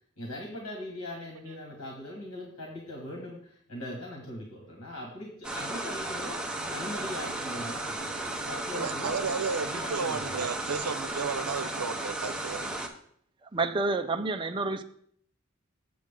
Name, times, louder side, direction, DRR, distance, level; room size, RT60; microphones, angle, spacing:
voice 1, 0.2-9.1 9.6-10.5, left 1 dB, 85° left, 1.9 m, -40 dB
sound 1, 5.4-12.9, right 2 dB, 5° right, 0.8 m, -34 dB
voice 2, 8.7-12.7, right 5 dB, 90° right, 0.6 m, -33 dB
voice 3, 13.4-14.8, right 3 dB, 20° right, 0.4 m, -29 dB
7.6 x 7.5 x 3.7 m
head